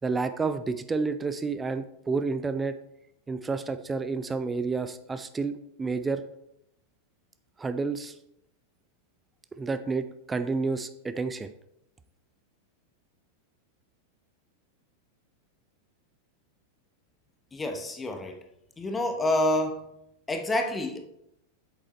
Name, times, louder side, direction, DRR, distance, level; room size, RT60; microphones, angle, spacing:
voice 1, 0.0-2.8 3.3-6.2 7.6-8.2 9.5-11.5, right 4 dB, 15° right, 11 dB, 0.4 m, -30 dB
voice 2, 17.5-18.4 18.8-19.8 20.3-21.0, left 1 dB, 15° left, 5 dB, 1.1 m, -28 dB
8.4 x 7.3 x 3.1 m, 0.80 s
figure-of-eight pair, 90°, 0 cm